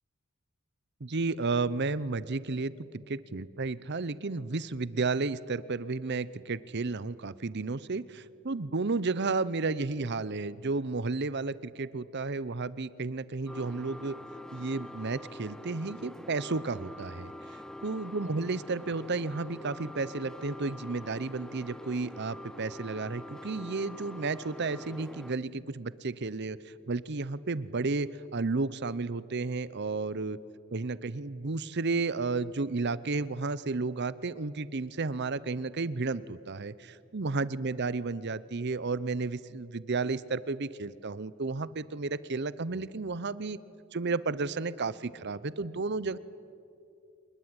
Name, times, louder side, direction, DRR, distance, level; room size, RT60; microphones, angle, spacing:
voice 1, 1.0-14.2 14.5-17.3 17.8-30.4 30.7-43.6 43.9-46.2, right 3 dB, 50° right, 18 dB, 0.8 m, -32 dB
sound 1, 13.4-25.3, left 1 dB, 5° left, 0.6 m, -45 dB
26.0 x 21.0 x 9.7 m, 2.6 s
head